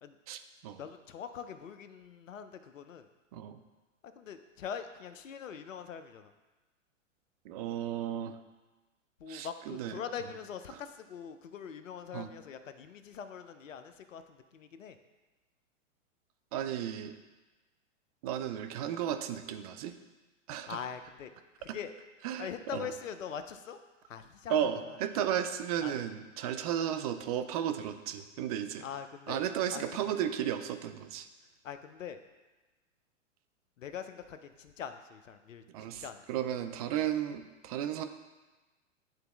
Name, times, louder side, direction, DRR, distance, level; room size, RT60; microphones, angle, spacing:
voice 1, 0.3-0.8 3.3-3.6 7.5-8.4 9.3-10.0 12.1-12.3 16.5-17.2 18.2-19.9 20.5-20.8 21.7-21.8 22.2-22.9 24.5-28.9 29.3-31.3 35.7-36.0 36.3-38.0, right 10 dB, 30° right, 9 dB, 0.4 m, -34 dB
voice 2, 0.8-3.1 4.0-6.3 9.2-15.0 20.7-21.3 21.6-21.9 22.4-23.8 24.1-25.0 25.8-26.0 28.8-29.4 29.7-30.1 31.6-32.2 33.8-36.2, left 7 dB, 85° left, 9 dB, 0.6 m, -43 dB
10.5 x 3.9 x 2.3 m, 1.2 s
hypercardioid pair, 115°, 38 cm